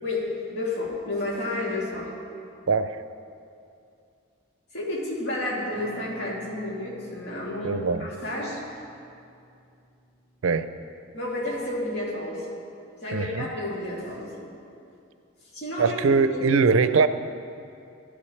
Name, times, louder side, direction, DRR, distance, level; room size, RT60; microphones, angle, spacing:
voice 1, 0.0-2.1 4.7-8.8 11.1-12.5 13.0-14.5 15.5-16.5, left 1 dB, 60° left, -5 dB, 2.8 m, -31 dB
Acoustic guitar, 5.7-10.9, right 1 dB, 25° left, 2.3 m, -50 dB
voice 2, 7.6-8.1 10.4-10.7 13.1-13.5 15.8-17.1, right 4 dB, 75° right, 12 dB, 0.5 m, -21 dB
14.0 x 12.5 x 3.2 m, 2.5 s
head